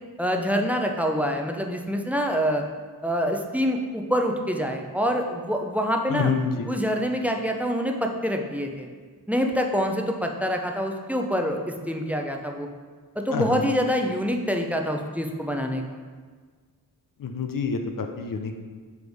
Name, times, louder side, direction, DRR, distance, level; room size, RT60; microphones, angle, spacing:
voice 1, 0.2-2.6 3.0-6.3 6.7-8.9 9.3-12.7 13.2-15.8, equal, 5° right, 3 dB, 0.6 m, -26 dB
voice 2, 6.1-6.7 13.3-13.6 17.2-18.5, left 5 dB, 55° left, 5 dB, 0.6 m, -27 dB
8.0 x 3.3 x 3.5 m, 1.5 s
cardioid pair, 50°, 39 cm